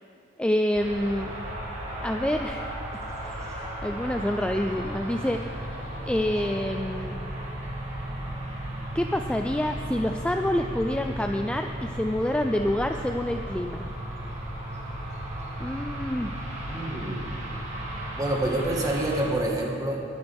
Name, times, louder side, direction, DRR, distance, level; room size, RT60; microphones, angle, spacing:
voice 1, 0.4-1.3 2.0-2.7 3.2-5.7 6.1-7.2 8.9-13.9 15.6-16.4, left 1 dB, 5° left, 5 dB, 0.3 m, -27 dB
sound 1, 0.7-19.3, right 1 dB, 35° right, 2.1 m, -35 dB
voice 2, 16.7-17.4 18.2-20.0, right 1 dB, 20° right, -1 dB, 1.6 m, -27 dB
21.0 x 10.5 x 3.5 m, 2.6 s
head